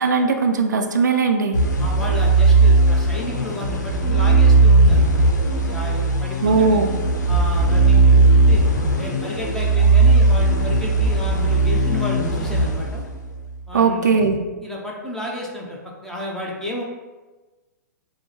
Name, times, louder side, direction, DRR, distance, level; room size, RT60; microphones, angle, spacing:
voice 1, 0.0-1.6 6.4-7.0 13.7-14.4, right 4 dB, 80° right, 5 dB, 0.5 m, -19 dB
sound 1, 1.5-13.4, right 3 dB, 80° left, 0.7 m, -17 dB
voice 2, 1.8-5.0 5.7-6.8 7.3-8.6 9.0-13.0 13.7-14.1 14.6-16.8, left 1 dB, 5° left, -3 dB, 0.8 m, -32 dB
6.1 x 2.1 x 3.2 m, 1.2 s
hypercardioid pair, 130°, 10 cm